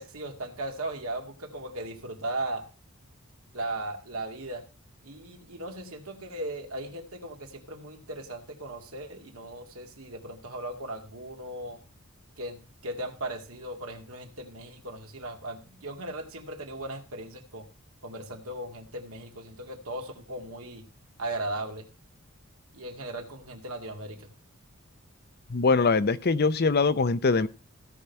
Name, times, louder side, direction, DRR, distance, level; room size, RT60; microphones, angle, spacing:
voice 1, 0.0-2.7 3.5-4.6 5.0-11.8 12.4-17.7 18.0-20.9 21.2-21.9 22.7-24.3, right 1 dB, 75° right, 2.3 m, -37 dB
voice 2, 25.5-27.5, left 4 dB, 45° left, 0.6 m, -23 dB
16.5 x 5.6 x 4.6 m
head